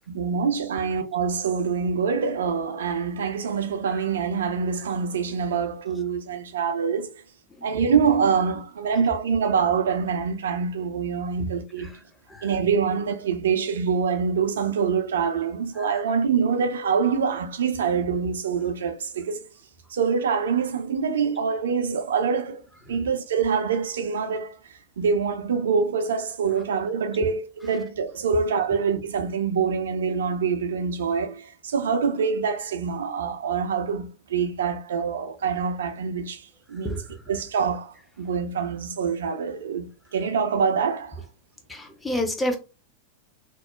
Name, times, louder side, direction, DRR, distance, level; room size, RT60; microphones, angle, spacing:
voice 1, 0.1-7.2 7.6-11.9 12.4-19.4 19.9-22.6 22.9-36.9 37.3-41.2, right 6 dB, 65° right, 0.4 m, -25 dB
voice 2, 41.7-42.6, left 1 dB, 10° left, 0.6 m, -28 dB
2.8 x 2.0 x 2.3 m
figure-of-eight pair, 90°, 0 cm